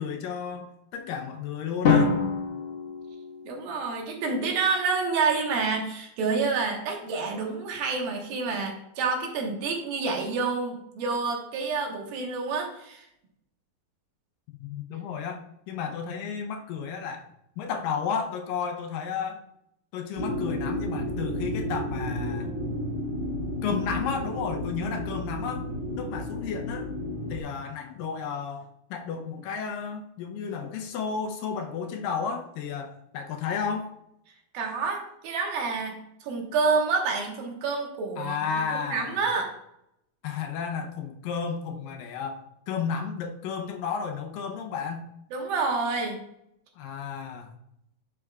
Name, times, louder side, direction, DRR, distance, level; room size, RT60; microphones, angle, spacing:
voice 1, 0.0-2.1 14.5-15.4 15.7-17.3 17.6-19.4 19.9-22.5 23.6-25.7 26.0-26.9 27.3-33.9 38.2-39.2 40.2-45.1 46.8-47.5, left 6 dB, 75° left, 5 dB, 2.3 m, -32 dB
Drum, 1.8-3.9, left 5 dB, 55° left, 1.7 m, -25 dB
voice 2, 3.4-13.1 34.5-38.4 38.7-39.5 45.3-46.2, right 4 dB, 80° right, 2 dB, 3.0 m, -28 dB
sound 1, 20.2-27.4, left 1 dB, 20° right, 3.0 m, -32 dB
9.6 x 6.7 x 2.3 m, 0.80 s
omnidirectional pair, 4.2 m